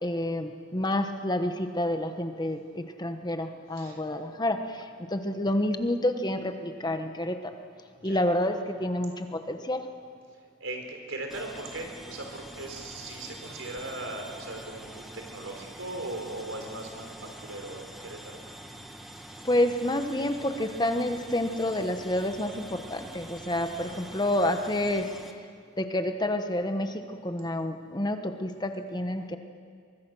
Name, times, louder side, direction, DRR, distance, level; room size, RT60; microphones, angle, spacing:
voice 1, 0.0-7.5 8.0-9.9 19.4-25.1 25.8-29.4, left 1 dB, 20° left, 7 dB, 1.1 m, -29 dB
voice 2, 7.9-8.3 10.3-18.4 23.8-24.4, right 2 dB, 90° right, 3 dB, 3.8 m, -39 dB
sound 1, 11.3-25.3, right 1 dB, ahead, 1.3 m, -45 dB
23.5 x 21.5 x 6.3 m, 2.1 s
head